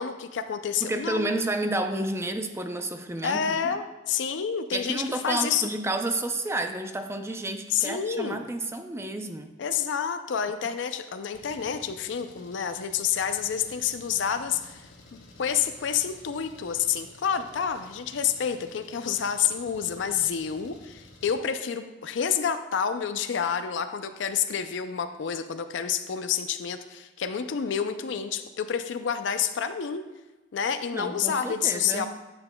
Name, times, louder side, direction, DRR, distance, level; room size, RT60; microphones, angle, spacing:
voice 1, 0.0-1.3 3.2-5.7 7.7-8.4 9.6-14.8 15.1-30.0 30.5-32.1, left 7 dB, 70° left, 9 dB, 0.4 m, -29 dB
voice 2, 0.8-3.8 4.7-9.5 30.9-32.1, right 2 dB, 15° right, 7 dB, 0.5 m, -31 dB
Engine, 11.3-21.4, left 2 dB, 90° left, 1.4 m, -52 dB
10.5 x 6.9 x 2.2 m, 1.1 s
head